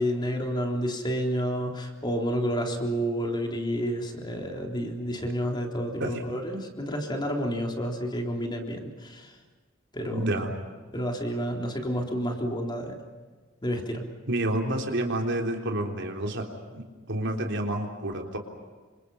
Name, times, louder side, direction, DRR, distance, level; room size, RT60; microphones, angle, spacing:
voice 1, 0.0-9.3 9.9-10.3 10.9-13.0 13.6-14.0, equal, 20° left, 2 dB, 3.7 m, -30 dB
voice 2, 10.1-10.5 14.3-18.4, right 1 dB, 60° right, 2 dB, 3.6 m, -29 dB
29.0 x 26.0 x 5.7 m, 1.4 s
head